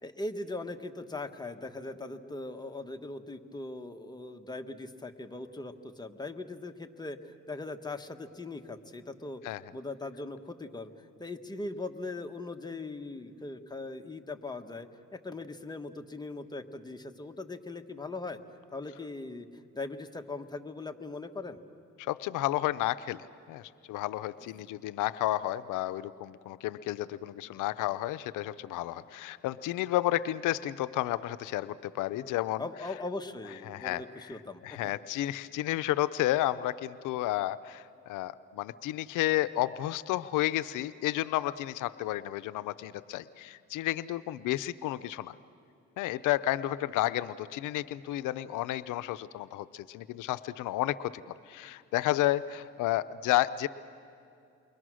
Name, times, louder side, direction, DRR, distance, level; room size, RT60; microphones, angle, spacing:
voice 1, 0.0-18.4 18.7-19.5 19.7-21.6 24.6-24.7 32.6-34.8, left 2 dB, 15° left, 6 dB, 1.3 m, -40 dB
voice 2, 22.0-23.2 23.5-32.6 33.7-34.4 34.6-45.3 46.0-51.2 51.5-53.7, left 15 dB, 90° left, 15 dB, 0.6 m, -31 dB
29.0 x 22.5 x 6.3 m, 2.4 s
cardioid pair, 90°, 30 cm